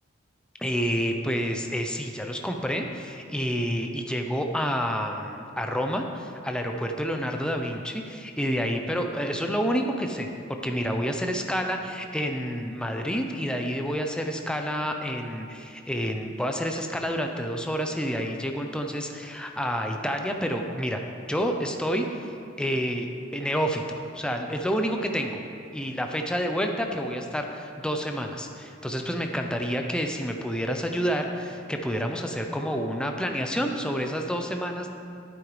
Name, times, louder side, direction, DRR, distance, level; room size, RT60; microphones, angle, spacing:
voice 1, 0.6-10.3 10.6-21.0 21.3-22.3 22.6-23.1 23.3-25.4 25.7-34.9, equal, 5° left, 3 dB, 0.5 m, -29 dB
11.0 x 8.8 x 3.2 m, 2.5 s
head